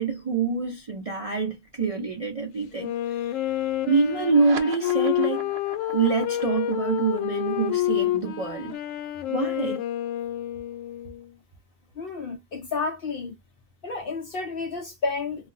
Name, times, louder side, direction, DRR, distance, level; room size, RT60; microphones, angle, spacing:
voice 1, 0.0-3.3 3.9-5.5 5.9-8.7 9.3-9.8, right 5 dB, 45° right, 0.4 m, -26 dB
Wind instrument woodwind instrument, 2.7-11.3, left 14 dB, 90° left, 1.0 m, -28 dB
sound 1, 4.2-11.1, right 7 dB, 65° right, 0.8 m, -43 dB
voice 2, 12.0-13.4 13.8-15.5, left 4 dB, 60° left, 0.6 m, -31 dB
2.4 x 2.0 x 3.8 m
omnidirectional pair, 1.3 m